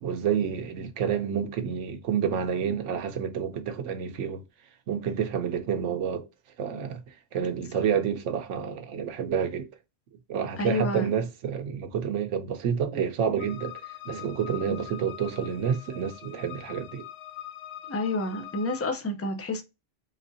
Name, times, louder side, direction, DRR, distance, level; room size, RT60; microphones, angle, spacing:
voice 1, 0.0-4.4 4.9-6.3 6.6-9.7 10.3-13.7 14.1-17.1, right 7 dB, 90° right, 1.0 m, -29 dB
voice 2, 10.6-11.1 14.7-14.8 17.9-19.6, left 2 dB, 20° left, 0.5 m, -29 dB
sound 1, 13.4-18.9, left 12 dB, 65° left, 0.8 m, -43 dB
4.0 x 3.7 x 2.7 m
omnidirectional pair, 1.2 m